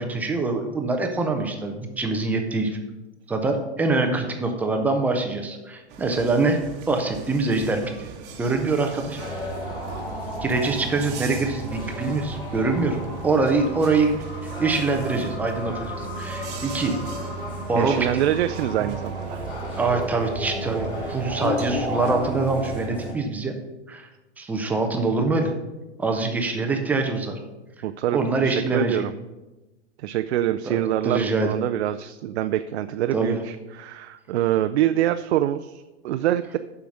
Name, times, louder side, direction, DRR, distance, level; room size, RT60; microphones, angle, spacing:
voice 1, 0.0-2.8 3.3-6.6 6.9-8.1 8.4-9.2 10.4-13.0 13.2-14.2 14.4-17.0 17.7-18.0 19.8-23.5 23.9-24.1 24.4-25.5 26.0-27.4 28.1-29.0 30.6-31.5 33.1-33.4, right 3 dB, 5° right, 4 dB, 0.4 m, -24 dB
sound 1, 5.9-22.9, right 5 dB, 30° right, 1.0 m, -41 dB
sound 2, 9.2-23.1, equal, 15° left, 1.9 m, -33 dB
voice 2, 17.7-19.4 27.8-29.1 30.0-36.6, right 12 dB, 65° right, 9 dB, 0.5 m, -25 dB
7.3 x 5.7 x 6.2 m, 1.1 s
hypercardioid pair, 140°, 35 cm